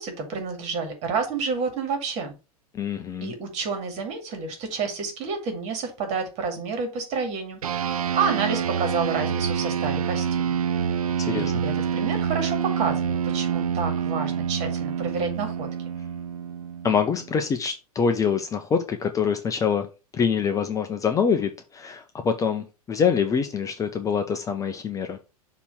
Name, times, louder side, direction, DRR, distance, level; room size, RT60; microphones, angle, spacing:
voice 1, 0.0-2.3 3.2-10.5 11.3-15.7, right 5 dB, 35° right, 2.1 m, -29 dB
voice 2, 2.7-3.3 11.3-11.5 16.8-19.9 20.1-25.2, left 6 dB, 15° left, 0.6 m, -25 dB
sound 1, 7.6-17.3, right 8 dB, 70° right, 0.4 m, -27 dB
6.9 x 3.0 x 5.7 m
figure-of-eight pair, 90°, 19 cm